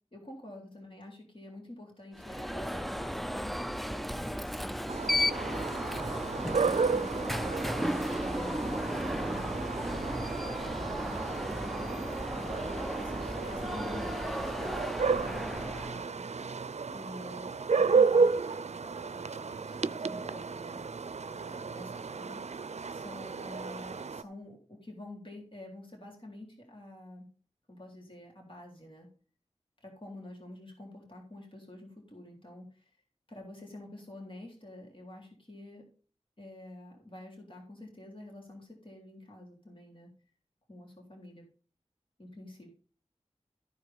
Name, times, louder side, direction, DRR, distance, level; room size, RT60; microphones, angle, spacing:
voice 1, 0.1-5.8 6.4-11.7 12.3-14.8 15.2-16.2 16.9-20.8 21.3-27.3 27.7-29.1 29.8-32.9 33.3-35.9 36.4-40.1 40.7-41.4 42.2-42.7, left 1 dB, 45° left, -1 dB, 3.5 m, -48 dB
Alarm, 2.2-16.1, equal, ahead, 0.4 m, -34 dB
sound 1, 4.9-24.2, right 5 dB, 70° right, 0.5 m, -32 dB
14.0 x 4.8 x 5.4 m, 0.42 s
wide cardioid pair, 50°, 12 cm